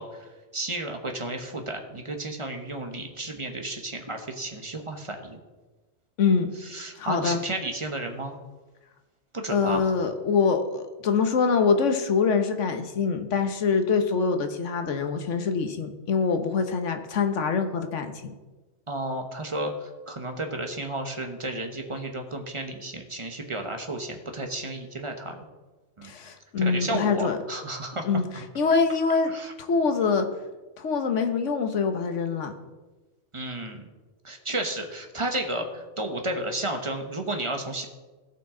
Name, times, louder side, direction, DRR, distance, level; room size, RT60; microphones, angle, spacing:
voice 1, 0.0-5.4 6.6-8.4 9.3-9.9 18.9-25.5 26.0-26.1 26.6-28.1 28.3-28.4 29.3-29.5 33.3-33.9 34.2-37.9, right 1 dB, 25° right, 4 dB, 1.0 m, -32 dB
voice 2, 6.2-6.5 7.0-7.4 9.5-18.3 26.0-27.4 28.1-28.3 28.5-30.3 30.8-32.5, left 5 dB, 65° left, 6 dB, 1.2 m, -24 dB
17.0 x 5.9 x 3.8 m, 1.2 s
omnidirectional pair, 1.3 m